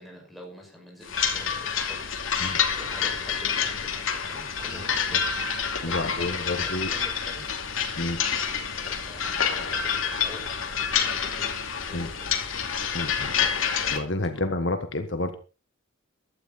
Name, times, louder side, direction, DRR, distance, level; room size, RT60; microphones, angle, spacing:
voice 1, 0.0-2.2 2.8-7.5 8.8-11.6 11.9-12.7, left 1 dB, ahead, -1 dB, 5.9 m, -46 dB
sound 1, 1.1-14.0, left 7 dB, 90° left, 2.7 m, -28 dB
voice 2, 5.8-6.9 8.0-8.2 11.9-12.1 12.9-13.3 13.9-15.4, left 2 dB, 60° left, 7 dB, 1.5 m, -29 dB
15.5 x 12.5 x 4.2 m, 0.34 s
head